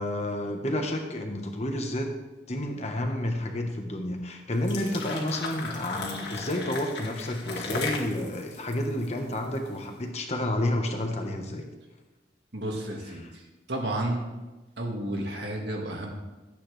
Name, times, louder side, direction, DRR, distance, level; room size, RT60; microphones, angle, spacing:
voice 1, 0.0-2.1 2.5-11.6 13.2-13.3, left 1 dB, 40° left, 3 dB, 1.3 m, -30 dB
sound 1, 4.5-9.8, left 3 dB, 70° left, 2.0 m, -36 dB
voice 2, 12.5-13.4 13.7-14.3 14.8-16.1, right 1 dB, 75° right, 0 dB, 2.0 m, -31 dB
13.5 x 8.5 x 3.4 m, 1.1 s
head